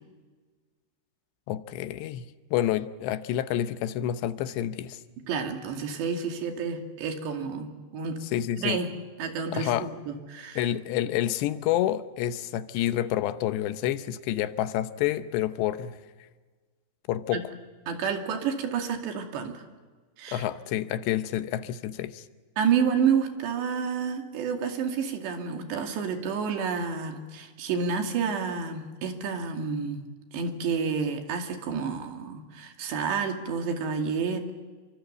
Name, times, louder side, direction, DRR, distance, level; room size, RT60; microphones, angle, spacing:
voice 1, 1.5-5.0 8.3-8.8 9.5-9.9 10.6-16.0 17.1-17.5 20.3-22.2, left 12 dB, 90° left, 11 dB, 3.2 m, -28 dB
voice 2, 5.3-8.2 8.6-8.9 9.2-10.6 17.3-17.4 17.9-19.6 20.2-20.4 22.6-30.0 30.3-34.5, right 6 dB, 85° right, 4 dB, 4.7 m, -29 dB
29.0 x 24.5 x 8.1 m, 1.4 s
omnidirectional pair, 4.9 m